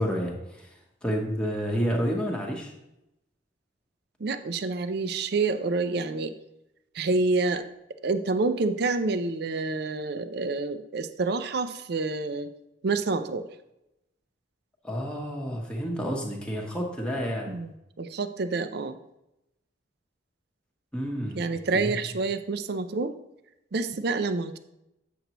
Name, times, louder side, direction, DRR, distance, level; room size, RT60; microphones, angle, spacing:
voice 1, 0.0-2.7 14.8-17.6 20.9-21.4 21.7-22.0, equal, 5° left, -2 dB, 0.9 m, -30 dB
voice 2, 4.2-6.3 6.9-7.6 8.0-12.5 12.8-13.4 17.5-19.0 21.4-23.2 23.7-24.6, right 3 dB, 55° right, 11 dB, 0.5 m, -28 dB
7.9 x 6.7 x 3.0 m, 0.88 s
head